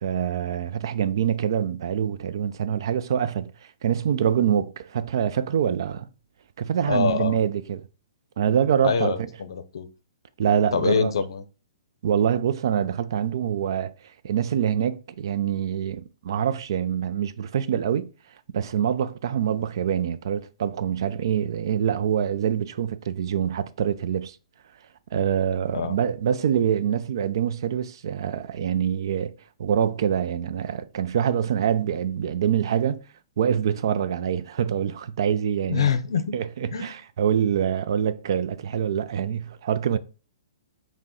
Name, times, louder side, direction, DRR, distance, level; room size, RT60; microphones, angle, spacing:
voice 1, 0.0-3.5 3.8-6.1 6.6-7.8 8.4-9.1 10.4-11.1 12.0-13.9 14.2-18.1 18.5-24.4 25.1-29.3 29.6-33.0 33.4-35.9 36.3-40.0, right 8 dB, 65° right, 0.3 m, -25 dB
voice 2, 6.8-7.4 8.8-9.9 10.7-11.4 25.7-26.0 35.7-36.3 36.7-36.9, left 6 dB, 75° left, 0.5 m, -25 dB
5.2 x 2.1 x 2.9 m
hypercardioid pair, 135°, 3 cm